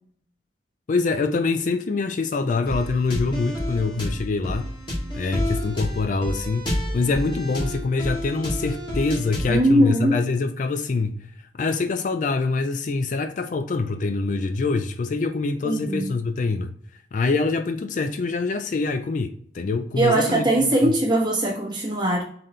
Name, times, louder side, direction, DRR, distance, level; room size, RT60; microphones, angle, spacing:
voice 1, 0.9-4.7 5.1-16.7 17.1-20.5 20.8-20.9, left 3 dB, 45° left, 0.3 m, -25 dB
sound 1, 2.7-9.6, left 1 dB, 25° left, 1.5 m, -29 dB
voice 2, 9.5-10.2 15.6-16.1 20.0-22.2, right 1 dB, 25° right, 1.3 m, -20 dB
4.0 x 3.7 x 3.1 m
head